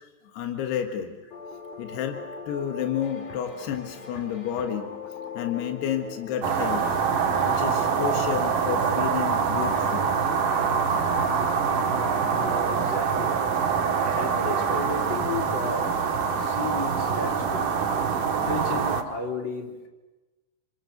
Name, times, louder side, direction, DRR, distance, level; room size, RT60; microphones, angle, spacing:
voice 1, 0.3-1.2 1.8-4.9 5.4-6.8 7.4-10.1, left 9 dB, 80° left, 5 dB, 3.6 m, -30 dB
sound 1, 1.3-8.2, left 5 dB, 50° left, 3.1 m, -40 dB
sound 2, 6.4-19.0, right 6 dB, 60° right, 3.0 m, -25 dB
voice 2, 12.3-13.4 14.0-16.0 16.4-17.7 18.3-19.9, left 3 dB, 30° left, 2 dB, 3.4 m, -33 dB
29.5 x 26.0 x 6.7 m, 1.1 s
omnidirectional pair, 4.6 m